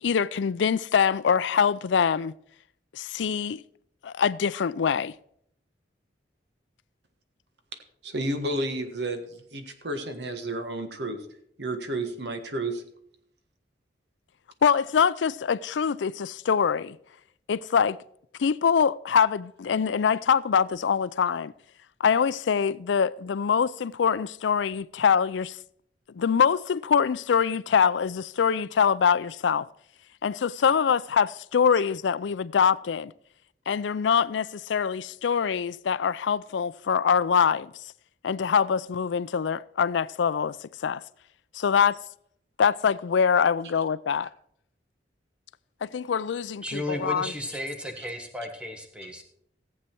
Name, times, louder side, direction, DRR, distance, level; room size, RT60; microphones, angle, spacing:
voice 1, 0.0-2.3 2.9-3.6 4.0-5.1 14.6-17.0 17.5-18.0 18.4-21.5 22.0-25.6 26.1-29.7 30.2-33.1 33.7-37.7 38.2-41.0 41.5-42.0 42.6-44.3 45.8-47.3, left 7 dB, 90° left, 0.4 m, -24 dB
voice 2, 8.0-11.2 11.6-12.8, right 1 dB, 70° right, 1.5 m, -31 dB
voice 3, 46.6-49.2, left 1 dB, 5° right, 1.5 m, -34 dB
15.0 x 8.2 x 4.5 m
head